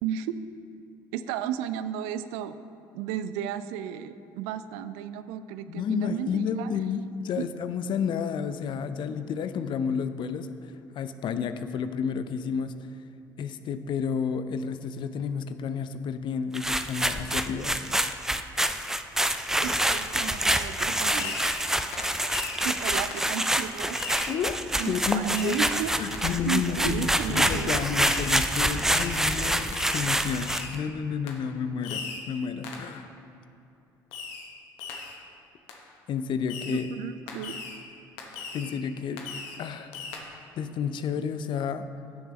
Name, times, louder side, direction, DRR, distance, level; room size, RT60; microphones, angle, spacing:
voice 1, 0.0-0.3 1.1-2.6 2.9-6.7 7.4-7.5 19.6-21.7 22.6-24.0 24.7-27.8 36.7-37.6, right 9 dB, 65° right, 12 dB, 0.4 m, -34 dB
voice 2, 5.7-10.6 10.9-12.7 13.4-17.8 24.3-24.6 24.9-25.6 26.0-33.1 36.1-36.9 38.5-39.2 39.6-39.9 40.6-41.9, left 7 dB, 45° left, 11 dB, 0.6 m, -31 dB
sound 1, 16.5-30.7, right 1 dB, 5° right, 0.5 m, -27 dB
Fireworks, 21.2-21.7 21.9-22.7 23.1-23.3 23.9-24.4 24.8-25.0 25.3-25.7 26.1-26.3 27.3-27.7 28.0-28.4 28.9-29.2 29.7-30.1 30.5-30.8 31.3-31.4 31.8-32.3 32.6-32.9 34.1-34.5 34.8-35.2 35.7-35.8 36.5-36.8 37.3-37.8 38.2-38.8 39.2-39.6 39.9-40.2, left 5 dB, 60° left, 1.2 m, -38 dB
17.0 x 6.7 x 3.2 m, 2.5 s
figure-of-eight pair, 55°, 11 cm